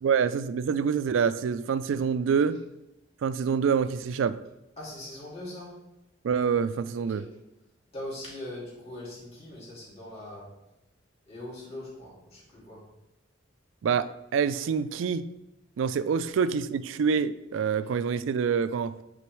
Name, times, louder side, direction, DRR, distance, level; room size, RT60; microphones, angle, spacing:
voice 1, 0.0-2.6 3.2-4.4 6.2-7.2 13.8-15.3 15.8-19.0, right 6 dB, 85° right, 0.3 m, -26 dB
voice 2, 4.8-5.7 6.9-7.3 7.9-10.5 11.3-12.8, left 1 dB, 35° left, 2.3 m, -41 dB
8.5 x 3.8 x 3.1 m
head